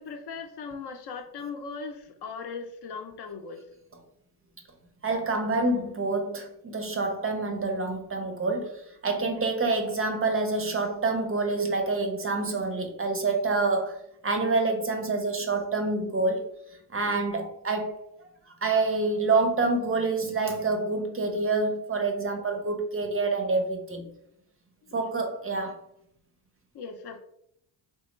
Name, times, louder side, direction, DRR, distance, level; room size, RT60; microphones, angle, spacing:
voice 1, 0.0-3.6 9.1-9.2 17.0-17.2 24.8-25.1 26.7-27.2, left 5 dB, 55° left, 5 dB, 0.6 m, -39 dB
voice 2, 5.0-13.9 14.2-16.4 16.9-18.0 18.6-24.1 24.9-25.8, right 3 dB, 30° right, 4 dB, 0.5 m, -27 dB
3.3 x 2.1 x 3.0 m, 0.75 s
supercardioid pair, 75°, 49 cm